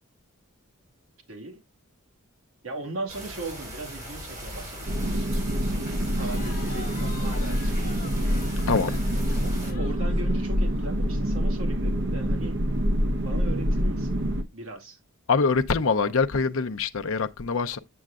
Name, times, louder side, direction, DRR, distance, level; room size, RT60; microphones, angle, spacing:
voice 1, 1.3-1.6 2.6-8.4 9.4-12.6 13.2-14.2 14.5-15.0, right 2 dB, 75° right, 2.2 m, -39 dB
sound 1, 3.1-9.7, equal, 35° right, 4.4 m, -39 dB
sound 2, 4.9-14.4, equal, 55° right, 0.9 m, -26 dB
Crowd, 5.9-10.9, left 4 dB, 40° left, 1.2 m, -45 dB
voice 2, 8.7-9.0 15.3-17.8, left 4 dB, 65° left, 0.6 m, -24 dB
7.9 x 7.5 x 2.4 m
head